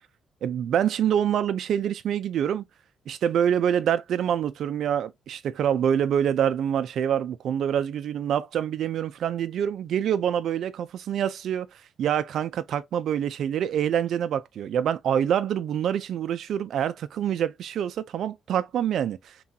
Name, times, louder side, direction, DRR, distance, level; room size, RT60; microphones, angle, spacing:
voice 1, 0.4-2.6 3.1-11.7 12.0-19.3, right 9 dB, 70° right, 0.4 m, -26 dB
3.0 x 2.3 x 2.7 m
cardioid pair, 90°, 0 cm